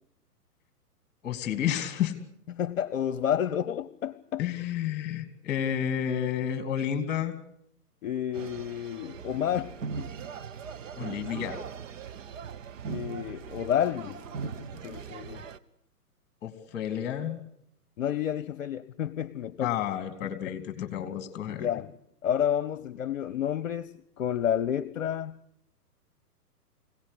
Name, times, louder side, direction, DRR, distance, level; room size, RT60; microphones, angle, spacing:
voice 1, 1.2-2.1 4.4-7.3 11.0-11.6 16.4-17.4 19.6-21.7, left 10 dB, 20° left, 9 dB, 2.8 m, -31 dB
voice 2, 2.5-4.4 8.0-10.1 12.8-15.4 18.0-19.8 20.2-21.0 21.4-21.9 22.2-23.9 24.2-25.4, left 9 dB, 55° left, 17 dB, 0.9 m, -30 dB
sound 1, 8.3-15.6, right 6 dB, 55° right, 1.1 m, -40 dB
25.0 x 17.5 x 8.2 m, 0.73 s
figure-of-eight pair, 130°, 47 cm